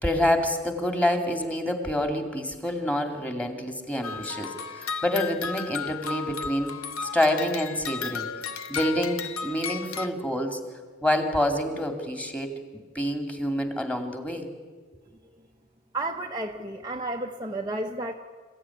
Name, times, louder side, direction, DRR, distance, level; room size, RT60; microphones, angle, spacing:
voice 1, 0.0-6.8 7.0-8.3 8.7-10.6 11.0-12.6 12.9-14.5, left 1 dB, 5° left, 5 dB, 2.4 m, -27 dB
sound 1, 4.0-10.1, left 6 dB, 80° left, 1.2 m, -34 dB
voice 2, 15.9-18.1, right 2 dB, 20° right, 1 dB, 0.9 m, -32 dB
28.0 x 15.5 x 9.8 m, 1.5 s
head